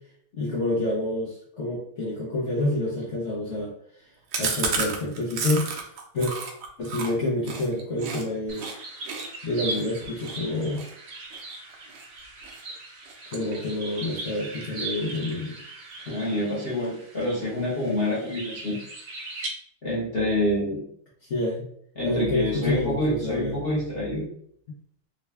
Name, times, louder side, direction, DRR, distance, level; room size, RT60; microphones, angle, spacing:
voice 1, 0.3-4.1 4.4-5.7 6.1-6.3 6.8-8.6 9.4-10.8 13.3-15.6 21.2-21.7 22.0-23.6, left 1 dB, 90° left, -6 dB, 0.6 m, -28 dB
Chewing mastication, 4.3-8.2 8.5-8.7 9.0-12.0 12.4-12.8 13.0-13.9 14.2-14.3 14.6-14.7 15.0-15.6, right 4 dB, 70° right, 1.2 m, -32 dB
sound 1, 8.5-19.5, right 2 dB, 85° right, 0.7 m, -39 dB
voice 2, 16.1-18.8 19.8-20.8 22.0-24.3, left 1 dB, 45° left, -6 dB, 0.7 m, -27 dB
3.8 x 2.2 x 3.3 m, 0.64 s
omnidirectional pair, 2.3 m